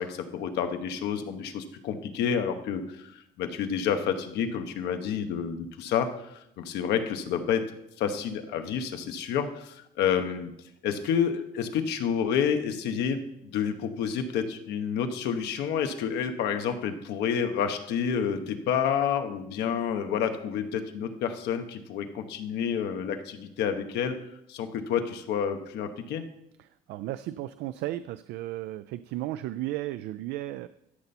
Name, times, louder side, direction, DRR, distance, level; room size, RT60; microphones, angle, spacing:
voice 1, 0.0-7.6 8.0-10.5 10.8-24.2 24.5-26.2, left 7 dB, 80° left, 7 dB, 1.1 m, -29 dB
voice 2, 26.6-30.7, right 15 dB, 85° right, 13 dB, 0.4 m, -34 dB
13.0 x 6.8 x 4.3 m, 0.80 s
cardioid pair, 110°, 17 cm